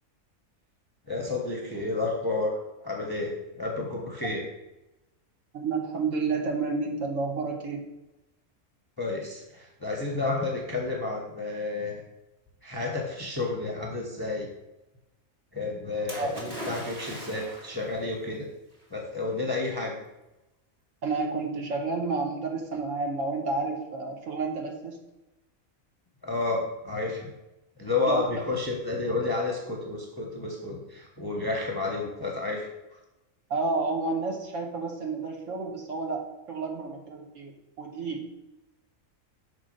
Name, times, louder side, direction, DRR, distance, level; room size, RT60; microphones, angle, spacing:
voice 1, 1.1-2.5 2.8-4.4 9.0-12.0 12.6-14.5 15.5-18.5 18.9-20.0 26.2-27.3 27.8-32.7, left 3 dB, 25° left, -1 dB, 0.6 m, -31 dB
voice 2, 5.5-7.8 16.2-16.4 21.0-25.0 28.1-28.2 33.5-38.2, right 3 dB, 70° right, 1 dB, 1.3 m, -30 dB
Splash splatter, 16.1-17.9 18.8-18.9, equal, 30° right, 1.4 m, -39 dB
5.8 x 3.4 x 5.2 m, 0.98 s
omnidirectional pair, 1.4 m